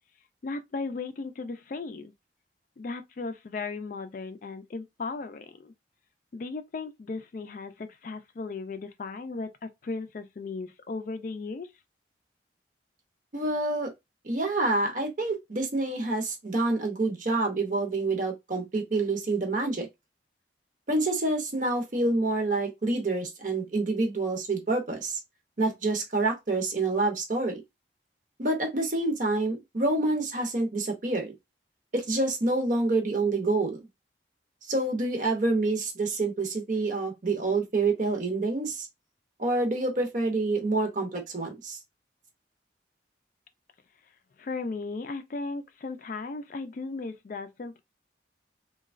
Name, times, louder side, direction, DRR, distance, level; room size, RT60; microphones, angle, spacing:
voice 1, 0.4-2.1 2.8-5.7 6.3-11.7 44.4-47.8, left 3 dB, 45° left, 0.3 m, -36 dB
voice 2, 13.3-13.9 14.2-19.9 20.9-25.2 25.6-27.6 28.4-31.3 31.9-33.8 34.7-38.9 39.4-41.8, right 2 dB, 45° right, 0.7 m, -27 dB
3.0 x 2.3 x 2.4 m
head